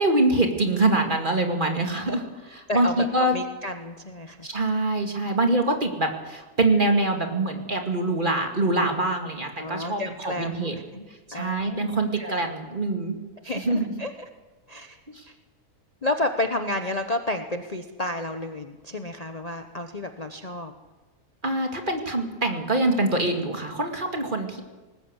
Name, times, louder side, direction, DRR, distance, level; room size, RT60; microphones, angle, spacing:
voice 1, 0.0-2.2 2.5-2.9 3.1-3.3 4.4-10.7 11.4-13.2 13.7-13.8 21.4-24.6, right 2 dB, 30° right, 3 dB, 2.4 m, -24 dB
voice 2, 1.7-2.1 2.7-4.5 9.6-11.1 11.3-12.4 13.4-14.3 14.7-15.0 16.0-20.7, left 1 dB, 30° left, 6 dB, 1.0 m, -31 dB
19.5 x 19.5 x 8.2 m, 1.2 s
omnidirectional pair, 1.6 m